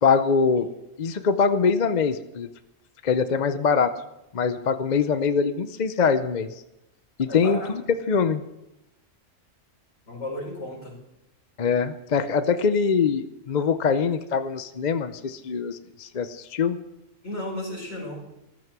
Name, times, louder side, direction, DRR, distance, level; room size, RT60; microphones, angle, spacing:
voice 1, 0.0-0.7 1.0-2.5 3.0-3.9 4.3-6.5 7.2-7.8 8.1-8.4 11.6-16.8, left 5 dB, 45° left, 10 dB, 0.7 m, -23 dB
voice 2, 7.3-7.7 10.1-11.0 17.2-18.2, left 1 dB, 60° left, -1 dB, 5.1 m, -33 dB
14.5 x 13.0 x 6.0 m, 0.91 s
omnidirectional pair, 1.3 m